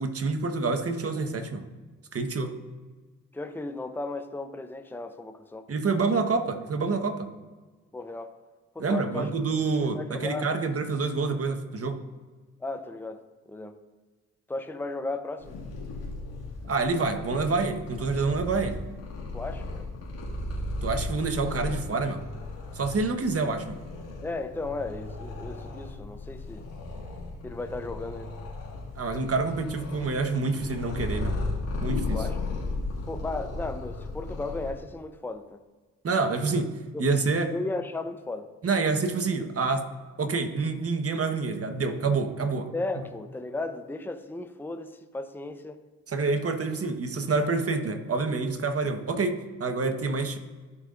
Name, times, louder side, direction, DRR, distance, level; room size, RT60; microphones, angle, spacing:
voice 1, 0.0-1.6 2.1-2.6 5.7-7.3 8.8-12.0 16.7-18.8 20.8-22.2 22.7-23.8 28.9-31.4 31.8-32.3 36.0-37.5 38.6-39.9 40.2-42.7 46.1-50.4, right 4 dB, 40° right, 6 dB, 1.4 m, -27 dB
voice 2, 3.3-5.7 7.9-8.4 8.7-9.3 9.7-10.5 12.6-13.2 13.5-13.8 14.5-15.5 19.3-19.8 24.2-26.6 27.4-28.4 32.1-32.4 33.1-35.6 36.9-37.1 37.4-38.5 42.7-45.8, left 2 dB, 5° left, 8 dB, 0.8 m, -35 dB
Purr, 15.4-34.7, left 2 dB, 75° left, 2.4 m, -35 dB
16.0 x 5.6 x 2.6 m, 1.4 s
hypercardioid pair, 45°, 37 cm